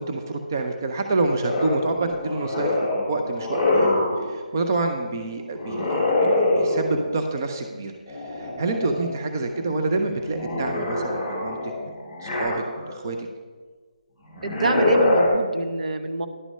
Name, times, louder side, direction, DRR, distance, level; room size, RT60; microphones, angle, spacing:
voice 1, 0.0-12.0 12.2-13.2, right 2 dB, 25° right, 5 dB, 0.5 m, -28 dB
sound 1, 1.4-4.2 5.6-7.1 8.1-9.1 9.5-13.0 14.3-15.3, left 2 dB, 5° right, 2.6 m, -24 dB
voice 2, 14.4-16.3, right 3 dB, 65° right, 8 dB, 0.9 m, -26 dB
11.0 x 6.0 x 5.4 m, 1.5 s
hypercardioid pair, 175°, 4 cm